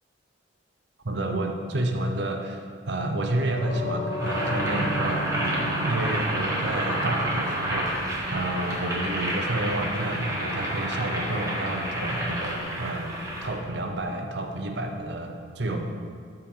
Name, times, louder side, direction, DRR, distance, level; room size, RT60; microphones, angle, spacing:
voice 1, 1.0-15.9, right 1 dB, 65° right, 3 dB, 0.8 m, -30 dB
sound 1, 3.6-12.6, equal, 60° left, 2.2 m, -36 dB
Boiling, 4.1-13.5, right 1 dB, 15° right, 1.4 m, -30 dB
13.0 x 4.5 x 3.8 m, 2.2 s
head